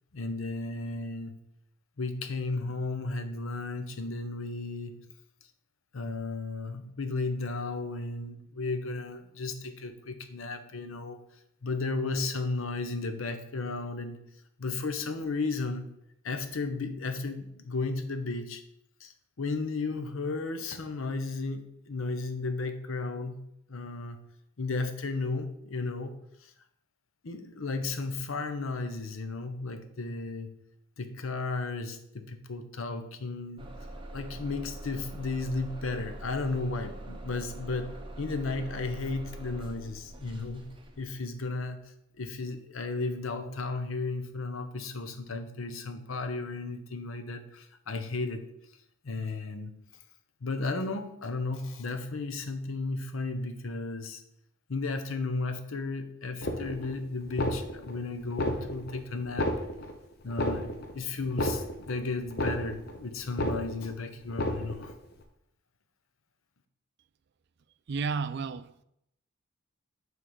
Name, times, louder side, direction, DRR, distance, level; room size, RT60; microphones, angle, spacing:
voice 1, 0.1-1.4 2.0-5.0 5.9-11.2 11.6-14.2 14.6-15.9 16.2-18.6 19.0-23.4 23.7-24.2 24.6-26.2 26.4-26.5 27.2-30.6 31.0-33.7 34.1-40.7 41.0-41.8 42.2-48.4 49.0-49.7 50.4-54.2 54.7-59.5 60.2-64.9, left 3 dB, 80° left, 0.8 m, -34 dB
Bus / Engine starting, 33.6-41.3, right 1 dB, 25° right, 0.7 m, -43 dB
sound 1, 56.4-57.0 57.2-58.0 58.3-59.0 59.2-60.0 60.3-61.0 61.2-62.0 62.3-63.0 63.2-64.0 64.3-65.0, left 1 dB, 50° left, 0.8 m, -32 dB
voice 2, 67.9-68.8, right 5 dB, 55° right, 0.4 m, -32 dB
6.3 x 3.7 x 6.1 m
head